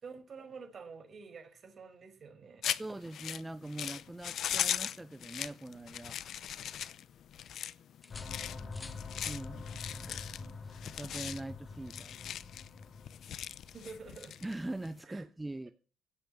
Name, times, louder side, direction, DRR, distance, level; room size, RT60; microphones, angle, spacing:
voice 1, 0.0-2.6 13.7-14.4 15.1-15.3, right 5 dB, 45° right, 5.1 m, -48 dB
sound 1, 2.6-15.0, left 10 dB, 70° left, 0.7 m, -39 dB
voice 2, 2.8-6.2 9.2-12.3 14.4-15.7, right 2 dB, 15° right, 0.7 m, -43 dB
sound 2, 5.8-6.4 6.8-7.6 8.0-9.1 10.9-11.2, left 4 dB, 30° left, 1.2 m, -55 dB
sound 3, 8.1-14.4, left 4 dB, 45° left, 2.8 m, -46 dB
16.5 x 7.7 x 8.6 m
cardioid pair, 90°, 0 cm